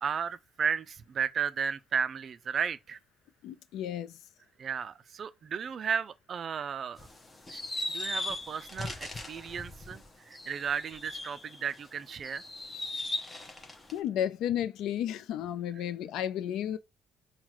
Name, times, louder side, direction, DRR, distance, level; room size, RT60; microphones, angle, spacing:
voice 1, 0.0-3.0 4.6-7.1 7.5-7.6 7.9-12.4, right 7 dB, 35° right, 0.3 m, -34 dB
voice 2, 3.4-4.2 13.9-16.8, left 10 dB, 80° left, 0.5 m, -32 dB
sound 1, 7.0-11.8 12.2-14.0, left 2 dB, 15° left, 0.7 m, -38 dB
5.6 x 2.2 x 3.0 m
cardioid pair, 170°, 0 cm